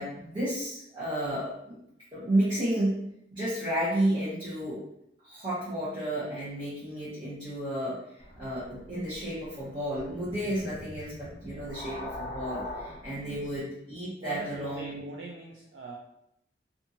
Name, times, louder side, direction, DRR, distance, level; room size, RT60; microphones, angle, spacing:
voice 1, 0.0-1.8 2.1-3.0 3.3-4.8 5.2-15.0, right 1 dB, 30° right, -11 dB, 0.8 m, -32 dB
sound 1, 8.2-13.6, left 1 dB, 40° left, 0.5 m, -42 dB
voice 2, 13.1-13.5 14.2-16.0, right 3 dB, 85° right, -2 dB, 0.4 m, -43 dB
2.6 x 2.4 x 2.7 m, 0.77 s
head